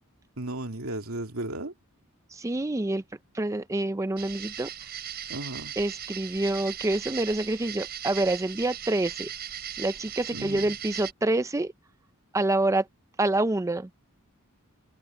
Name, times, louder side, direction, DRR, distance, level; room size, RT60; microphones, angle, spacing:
voice 1, 0.4-1.7 5.3-5.7 10.3-10.6, right 2 dB, 85° right, 2.7 m, -35 dB
voice 2, 2.3-3.0 3.3-4.7 5.8-9.3 9.8-11.7 12.3-12.9 13.2-13.9, right 2 dB, 15° right, 0.4 m, -27 dB
sound 1, 4.2-11.1, right 10 dB, 50° right, 7.2 m, -38 dB
open air
head